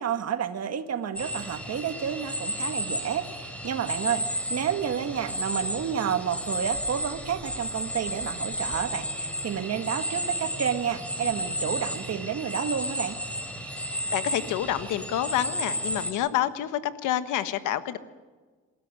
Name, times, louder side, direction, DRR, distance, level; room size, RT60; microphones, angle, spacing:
voice 1, 0.0-13.2, right 8 dB, 55° right, 9 dB, 1.8 m, -30 dB
sound 1, 1.2-16.1, equal, 5° left, 4.8 m, -33 dB
voice 2, 13.9-18.0, left 12 dB, 90° left, 11 dB, 1.4 m, -28 dB
27.5 x 13.5 x 9.9 m, 1.4 s
cardioid pair, 90°, 30 cm